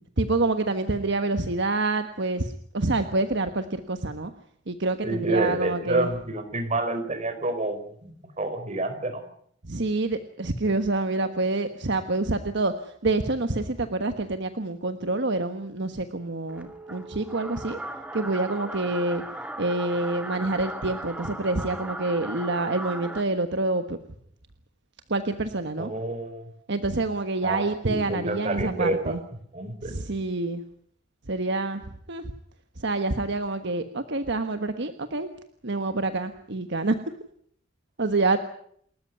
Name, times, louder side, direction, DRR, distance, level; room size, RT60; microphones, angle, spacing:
voice 1, 0.2-4.3 4.7-6.1 9.6-17.8 18.1-19.2 19.6-24.0 25.1-25.9 26.7-29.2 29.8-30.6 31.3-31.8 32.1-32.2 32.8-35.3 35.6-37.0 38.0-38.4, right 2 dB, 65° right, 8 dB, 1.4 m, -27 dB
voice 2, 5.0-9.2 25.8-26.5 27.4-29.2 29.5-29.9, right 2 dB, 35° right, 8 dB, 4.5 m, -29 dB
sound 1, 16.5-23.2, right 1 dB, 5° right, 2.1 m, -37 dB
29.0 x 13.5 x 9.5 m, 0.67 s
head